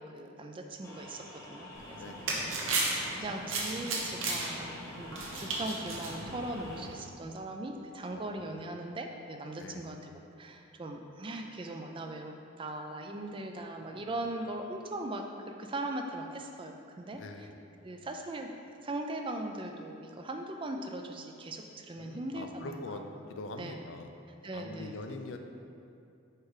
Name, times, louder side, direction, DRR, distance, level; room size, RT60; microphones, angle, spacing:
voice 1, 0.0-2.2 2.6-17.5 17.8-18.5 18.8-23.0 23.6-23.8 24.4-25.0, right 1 dB, 25° right, 4 dB, 0.3 m, -40 dB
sound 1, 0.8-6.8, left 1 dB, 15° left, 0.7 m, -48 dB
sound 2, 1.8-6.9, right 3 dB, 80° right, 0.9 m, -35 dB
voice 2, 2.0-2.3 8.1-8.3 9.6-9.9 13.8-14.1 17.1-17.5 22.0-23.0 23.3-24.1 24.5-25.4, left 2 dB, 65° left, 5 dB, 0.4 m, -43 dB
4.7 x 4.5 x 4.8 m, 2.6 s
head